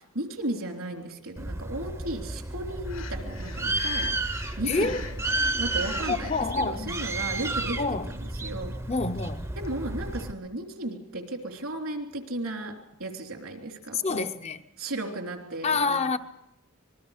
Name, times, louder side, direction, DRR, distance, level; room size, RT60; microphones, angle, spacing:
voice 1, 0.0-4.2 4.6-7.8 8.1-8.7 9.5-12.7 13.0-14.3 14.8-16.2, right 1 dB, 85° right, 3.3 m, -35 dB
Bird, 1.4-10.3, right 2 dB, 15° right, 0.7 m, -32 dB
Breathing, 2.8-6.5, left 5 dB, 70° left, 1.5 m, -43 dB
voice 2, 4.7-5.1 6.1-7.0 7.8-8.1 8.9-9.5 13.9-14.6 15.6-16.2, left 4 dB, 30° left, 0.6 m, -27 dB
25.5 x 20.5 x 5.0 m
head